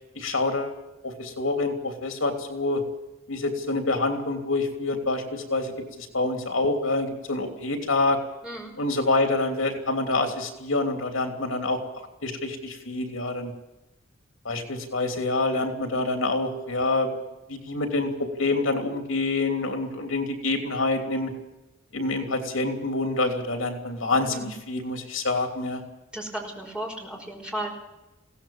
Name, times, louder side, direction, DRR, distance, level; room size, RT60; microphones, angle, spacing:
voice 1, 0.1-0.8 1.0-2.8 3.3-5.7 6.0-8.2 8.8-11.8 12.2-13.5 14.4-17.1 17.5-18.1 18.4-21.3 21.9-25.8, left 2 dB, 75° left, 5 dB, 3.1 m, -26 dB
voice 2, 8.4-8.7 24.3-24.6 26.1-27.8, right 1 dB, 5° right, 0 dB, 5.4 m, -34 dB
22.0 x 17.0 x 7.3 m, 1.0 s
head